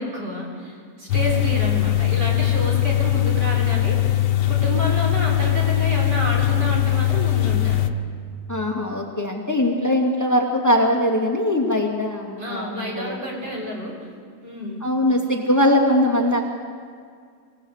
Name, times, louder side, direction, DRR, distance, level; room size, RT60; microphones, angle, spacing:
voice 1, 0.0-4.1 4.5-7.8 12.4-13.9 14.4-14.9, right 1 dB, 85° right, -2 dB, 5.3 m, -29 dB
sound 1, 1.1-7.9, left 13 dB, 80° left, 1.5 m, -20 dB
voice 2, 8.5-13.2 14.8-16.4, left 1 dB, 10° left, 0 dB, 2.6 m, -21 dB
25.5 x 17.5 x 8.3 m, 2.1 s
omnidirectional pair, 1.8 m